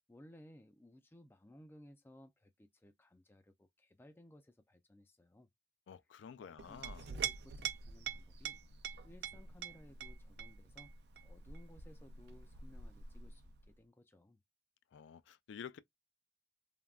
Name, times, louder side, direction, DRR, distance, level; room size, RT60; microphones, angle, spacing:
voice 1, 0.1-5.5 6.3-8.6 9.0-10.9 11.2-14.4, left 1 dB, 10° left, 0.3 m, -60 dB
voice 2, 5.9-7.1 14.9-15.8, left 7 dB, 85° left, 0.4 m, -50 dB
Chink clink, 6.6-13.7, right 7 dB, 60° right, 0.4 m, -45 dB
3.5 x 2.2 x 2.3 m
head